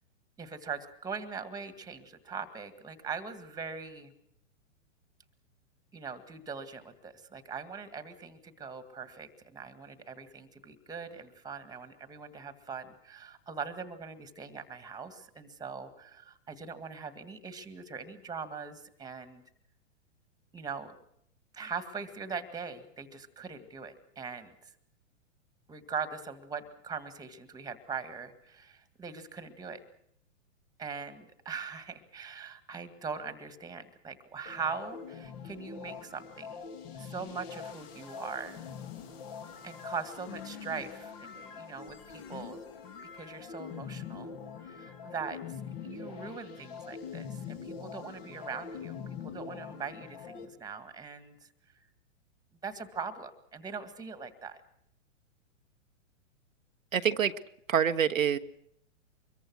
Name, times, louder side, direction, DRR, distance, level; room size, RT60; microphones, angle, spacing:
voice 1, 0.4-4.1 5.9-19.4 20.5-21.0 21.5-24.7 25.7-29.8 30.8-38.6 39.6-42.6 43.1-44.4 44.6-45.4 45.8-51.5 52.6-54.6, right 5 dB, 10° right, 11 dB, 2.0 m, -41 dB
sound 1, 34.5-50.5, left 6 dB, 50° left, 3.5 m, -44 dB
voice 2, 56.9-57.3 57.7-58.4, right 8 dB, 85° right, 8 dB, 1.1 m, -26 dB
25.0 x 22.5 x 6.3 m, 0.74 s
hypercardioid pair, 120°, 39 cm